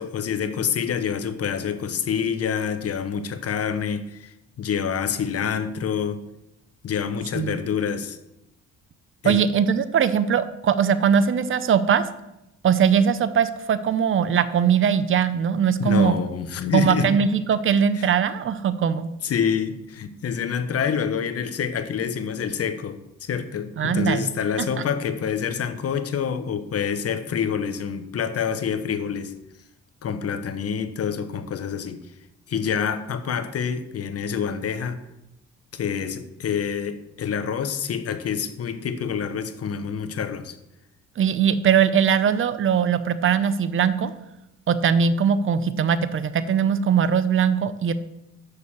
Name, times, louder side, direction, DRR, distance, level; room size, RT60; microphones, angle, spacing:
voice 1, 0.0-6.2 6.8-8.2 9.2-9.4 15.8-17.1 17.9-18.1 19.2-29.3 30.0-32.0 32.5-35.0 35.7-40.5, left 7 dB, 55° left, 9 dB, 1.0 m, -27 dB
voice 2, 9.2-12.0 12.6-16.2 16.7-19.1 23.8-24.3 24.8-24.9 41.2-44.1 44.7-47.9, right 7 dB, 45° right, 14 dB, 0.7 m, -20 dB
6.6 x 6.5 x 7.1 m, 0.85 s
cardioid pair, 90°, 30 cm